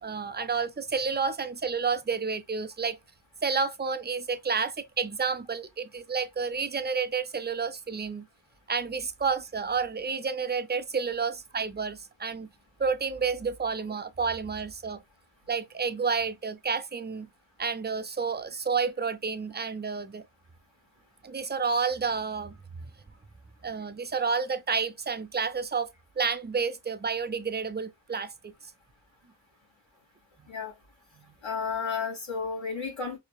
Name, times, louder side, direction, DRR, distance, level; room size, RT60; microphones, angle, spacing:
voice 1, 0.0-3.0 3.4-8.3 8.7-12.5 12.8-15.0 15.5-17.3 17.6-20.2 21.2-22.6 23.6-25.9 26.2-28.5 31.2-31.3, right 5 dB, 20° right, 0.4 m, -30 dB
voice 2, 31.4-33.2, left 5 dB, 65° left, 2.4 m, -32 dB
4.7 x 2.7 x 2.2 m
wide cardioid pair, 65°, 50 cm